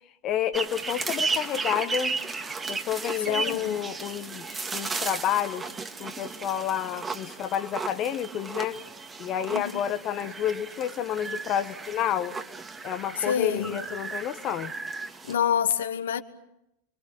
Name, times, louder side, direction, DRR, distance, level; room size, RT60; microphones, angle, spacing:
voice 1, 0.2-2.2 2.7-5.7 6.0-8.8 9.2-12.3 12.8-14.7, left 10 dB, 35° left, 1.1 m, -30 dB
sound 1, 0.5-15.4, right 4 dB, 15° right, 1.8 m, -35 dB
voice 2, 3.3-3.7 9.5-9.8 13.2-13.8 15.2-16.2, left 8 dB, 65° left, 1.5 m, -27 dB
29.5 x 23.5 x 7.3 m
figure-of-eight pair, 90°, 0 cm